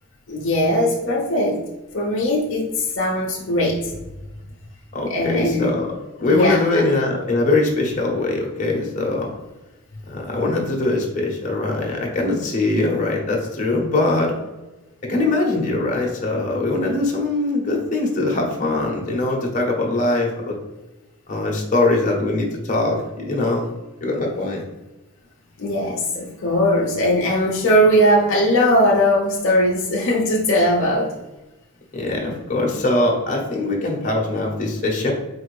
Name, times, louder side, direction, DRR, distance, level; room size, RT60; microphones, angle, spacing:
voice 1, 0.3-1.6 1.9-3.9 5.1-5.7 6.3-6.6 25.6-31.1, equal, 60° left, -3 dB, 0.6 m, -19 dB
voice 2, 4.9-5.9 6.2-9.3 10.1-14.3 15.1-20.6 21.3-23.7 24.0-24.6 31.9-35.1, left 2 dB, 35° left, -1 dB, 0.8 m, -22 dB
4.5 x 2.5 x 3.1 m, 1.1 s
head